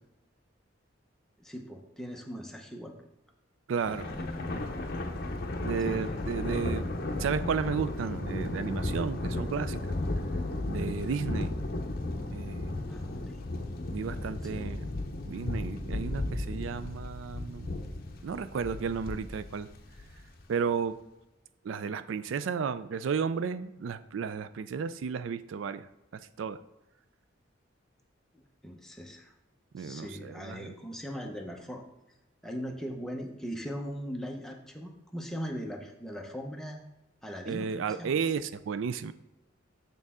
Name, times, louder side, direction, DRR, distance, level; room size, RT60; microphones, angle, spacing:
voice 1, 1.4-2.9 3.9-4.3 5.9-6.1 12.9-13.4 14.4-14.7 28.3-29.3 29.8-31.8 32.4-36.8 37.2-38.2, equal, ahead, 1 dB, 0.8 m, -40 dB
voice 2, 3.7-4.1 5.6-6.9 7.2-9.8 10.7-11.5 12.3-12.7 13.9-14.9 15.2-17.8 18.2-19.7 20.5-21.0 21.6-25.9 26.1-26.6 29.7-30.7 37.5-39.1, right 6 dB, 80° right, 14 dB, 0.4 m, -33 dB
Thunder, 3.8-20.4, left 2 dB, 50° left, 0.7 m, -34 dB
6.8 x 6.5 x 3.6 m, 0.94 s
head